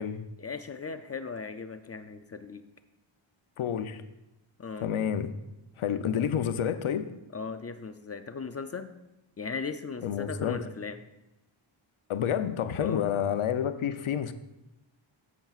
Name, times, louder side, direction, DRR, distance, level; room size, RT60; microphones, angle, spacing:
voice 1, 0.4-2.6 4.6-4.9 7.3-8.9 9.4-11.0 12.8-13.0, left 5 dB, 35° left, 9 dB, 0.4 m, -37 dB
voice 2, 3.6-4.0 4.8-5.3 5.8-7.1 10.0-10.6 12.1-14.3, left 8 dB, 85° left, 9 dB, 0.7 m, -29 dB
13.5 x 7.2 x 2.4 m, 0.94 s
wide cardioid pair, 140°, 48 cm